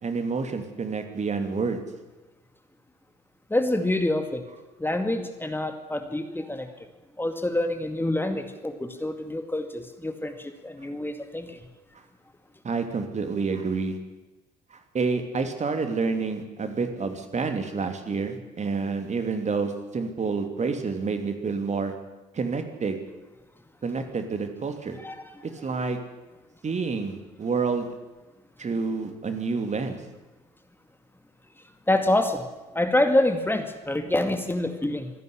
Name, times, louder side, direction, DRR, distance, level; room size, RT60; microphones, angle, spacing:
voice 1, 0.0-1.8 12.6-14.0 14.7-21.9 22.3-23.0 23.8-25.0 25.6-26.0 26.6-27.9 28.6-30.0, right 4 dB, 35° right, 7 dB, 2.9 m, -28 dB
voice 2, 3.5-4.4 4.8-6.9 7.2-11.7 25.0-25.4 31.9-32.5 32.7-35.1, left 1 dB, 10° left, 6 dB, 2.2 m, -26 dB
25.0 x 11.0 x 9.9 m, 1.1 s
figure-of-eight pair, 55°, 21 cm